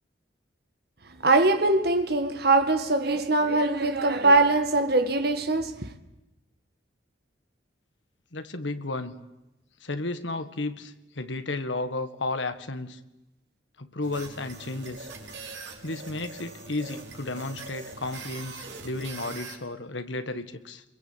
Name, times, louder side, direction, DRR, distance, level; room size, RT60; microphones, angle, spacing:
voice 1, 1.2-5.9, right 2 dB, 55° right, 1.7 m, -22 dB
voice 2, 8.3-9.2 9.8-13.0 13.8-15.1 15.8-20.8, left 2 dB, 75° left, 1.7 m, -33 dB
sound 1, 14.0-19.6, right 3 dB, 70° right, 4.5 m, -42 dB
28.5 x 22.0 x 8.8 m
head